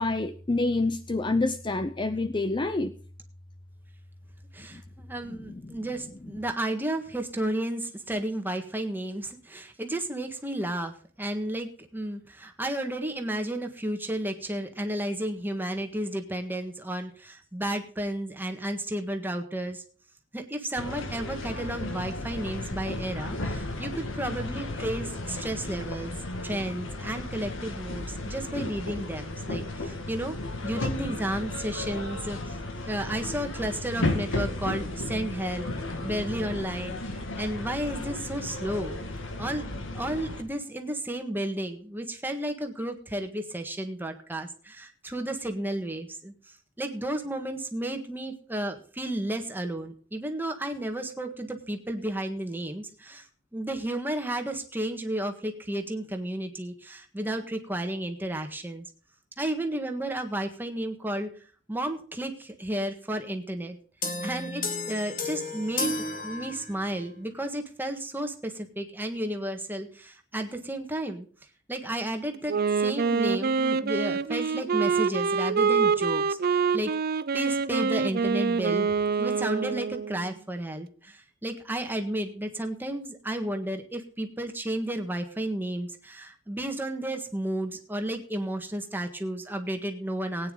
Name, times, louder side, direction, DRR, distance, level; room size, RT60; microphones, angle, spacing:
voice 1, 0.0-2.9 4.7-4.8 5.3-5.8, left 2 dB, 25° left, 11 dB, 0.5 m, -28 dB
voice 2, 4.5-19.8 20.3-26.1 26.4-30.3 30.6-32.6 32.9-35.7 36.0-39.0 39.4-46.3 46.8-53.3 53.5-58.9 59.4-61.3 61.7-63.8 64.2-71.3 71.7-76.9 77.3-78.9 79.2-90.5, right 1 dB, 10° right, 5 dB, 1.6 m, -32 dB
sound 1, 20.8-40.4, left 2 dB, 70° left, 1.9 m, -34 dB
sound 2, 64.0-67.0, left 2 dB, 45° left, 2.4 m, -32 dB
Wind instrument woodwind instrument, 72.5-80.2, right 5 dB, 50° right, 0.5 m, -26 dB
18.0 x 9.4 x 3.9 m, 0.43 s
head